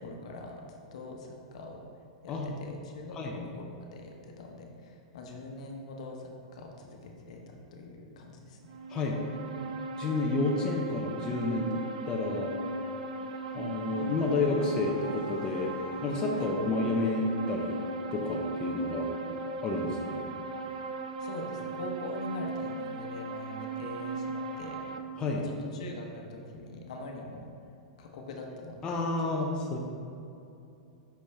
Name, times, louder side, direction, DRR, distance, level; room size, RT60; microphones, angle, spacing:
voice 1, 0.0-1.8 2.2-8.7 16.3-16.5 21.2-24.8 25.3-27.5 28.0-28.9, left 2 dB, 70° left, 1 dB, 0.9 m, -43 dB
sound 1, 8.7-25.0, right 3 dB, 85° right, 0.4 m, -37 dB
voice 2, 8.9-9.3 10.0-11.8 12.1-12.5 13.5-15.7 16.0-17.8 18.1-19.1 19.6-20.2 25.2-25.5 28.8-29.8, left 3 dB, 20° left, -1 dB, 0.6 m, -30 dB
sound 2, 13.5-18.6, right 2 dB, ahead, 1.2 m, -51 dB
5.7 x 5.2 x 3.4 m, 2.6 s
hypercardioid pair, 145°, 4 cm